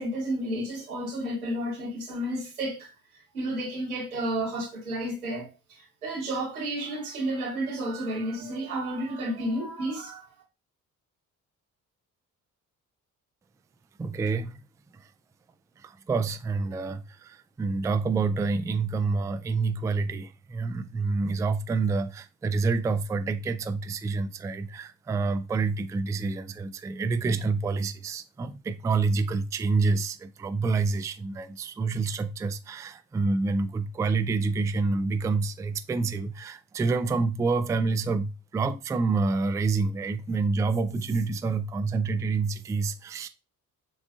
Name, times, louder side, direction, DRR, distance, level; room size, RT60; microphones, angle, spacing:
voice 1, 0.0-2.9 3.3-10.3, right 1 dB, 85° right, 1.2 m, -31 dB
voice 2, 14.0-14.5 15.8-43.3, right 4 dB, 10° right, 0.3 m, -28 dB
6.9 x 2.4 x 2.3 m
figure-of-eight pair, 45°, 42 cm